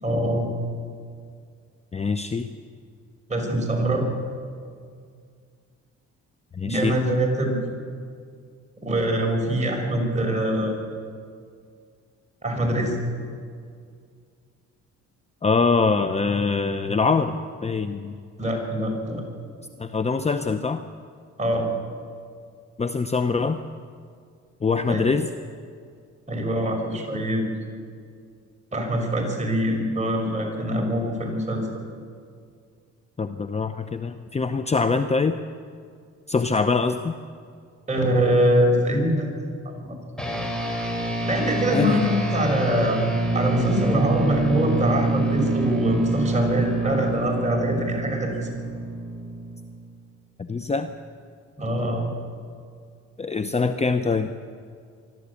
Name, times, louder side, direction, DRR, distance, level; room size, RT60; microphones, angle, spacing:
voice 1, 0.0-0.5 3.3-4.1 6.6-7.6 8.8-10.8 12.4-13.0 18.4-19.2 21.4-21.7 24.8-25.0 26.3-27.4 28.7-31.8 37.9-39.3 39.6-40.1 41.3-43.0 43.3-48.5 51.6-52.1, right 1 dB, 25° right, 0 dB, 6.1 m, -24 dB
voice 2, 1.9-2.5 6.5-7.0 15.4-18.2 19.8-20.8 22.8-23.6 24.6-25.3 33.2-35.4 36.3-37.2 41.7-42.0 50.4-50.9 53.2-54.3, left 4 dB, 20° left, 9 dB, 0.8 m, -23 dB
sound 1, 40.2-49.9, right 2 dB, ahead, 4.0 m, -26 dB
24.5 x 12.5 x 8.5 m, 2.2 s
cardioid pair, 90°, 30 cm